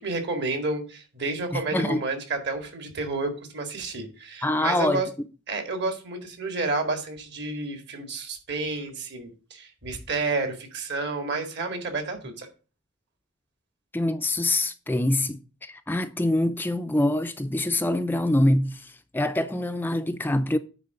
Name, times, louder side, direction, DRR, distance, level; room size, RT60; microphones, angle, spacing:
voice 1, 0.0-5.1 5.5-12.5, right 3 dB, 60° right, 2.0 m, -30 dB
voice 2, 1.5-2.0 4.4-5.0 13.9-20.6, left 1 dB, 10° left, 0.4 m, -25 dB
9.4 x 3.8 x 6.5 m
head